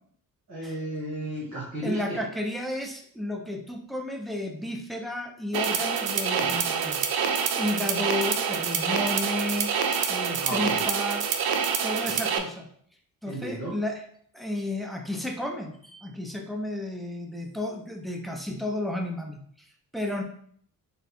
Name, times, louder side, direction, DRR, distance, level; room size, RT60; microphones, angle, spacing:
voice 1, 0.5-2.2 10.4-10.9 12.1-12.2 13.3-13.8, right 1 dB, 50° right, -6 dB, 1.6 m, -34 dB
voice 2, 1.8-7.0 7.5-9.7 10.1-11.3 11.8-12.7 13.2-14.0 14.3-19.4 19.9-20.2, left 1 dB, ahead, 2 dB, 0.7 m, -32 dB
sound 1, 5.5-12.4, right 6 dB, 75° right, 0.6 m, -26 dB
3.9 x 2.4 x 4.2 m, 0.62 s
cardioid pair, 70°, 38 cm